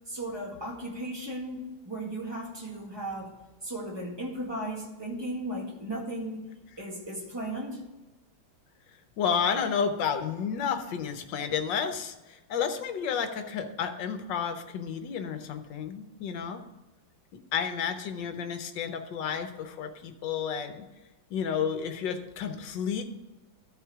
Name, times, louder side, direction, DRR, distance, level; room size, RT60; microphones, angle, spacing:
voice 1, 0.1-6.5 6.8-7.8, right 1 dB, 15° right, -3 dB, 1.9 m, -36 dB
voice 2, 9.2-16.6 17.5-20.9 21.3-23.0, left 7 dB, 70° left, 8 dB, 1.5 m, -31 dB
12.5 x 4.5 x 4.8 m, 1.0 s
omnidirectional pair, 2.1 m